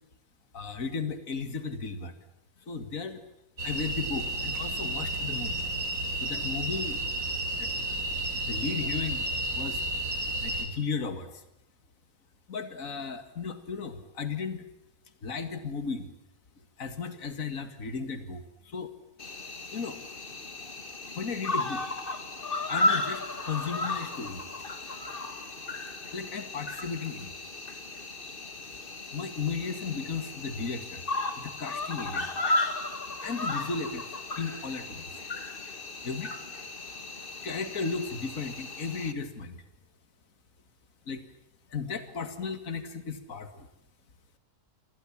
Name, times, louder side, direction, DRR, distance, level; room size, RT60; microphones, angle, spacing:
voice 1, 0.5-2.2 2.7-3.2 3.6-5.7 6.2-7.0 7.6-8.0 8.5-9.8 10.4-11.4 12.5-14.7 15.2-16.1 16.8-18.9 19.7-20.0 21.2-21.8 22.7-24.4 26.1-27.3 29.1-31.0 31.4-32.3 33.2-34.1 34.3-35.1 36.0-36.4 37.4-39.6 41.1-41.2 41.7-43.7, left 5 dB, 65° left, 10 dB, 2.5 m, -35 dB
sound 1, 3.6-10.6, right 1 dB, 65° right, 7.0 m, -32 dB
Cricket, 19.2-39.1, left 2 dB, 35° left, 2.3 m, -34 dB
29.5 x 26.5 x 7.3 m, 0.84 s
omnidirectional pair, 1.6 m